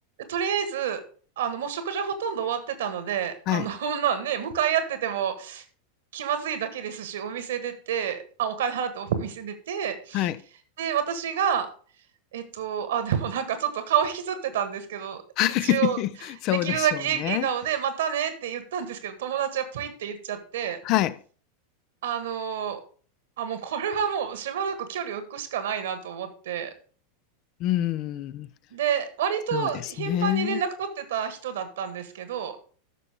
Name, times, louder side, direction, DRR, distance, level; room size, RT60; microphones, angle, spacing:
voice 1, 0.3-1.0 1.4-5.6 6.1-10.3 10.8-11.7 12.3-15.2 15.6-16.0 16.5-20.8 22.0-22.8 23.4-26.7 28.7-32.6, right 8 dB, 65° right, 1.5 m, -29 dB
voice 2, 15.4-17.5 20.8-21.2 27.6-28.5 29.5-30.6, left 14 dB, 45° left, 0.5 m, -26 dB
13.5 x 5.9 x 3.5 m
figure-of-eight pair, 90°, 0 cm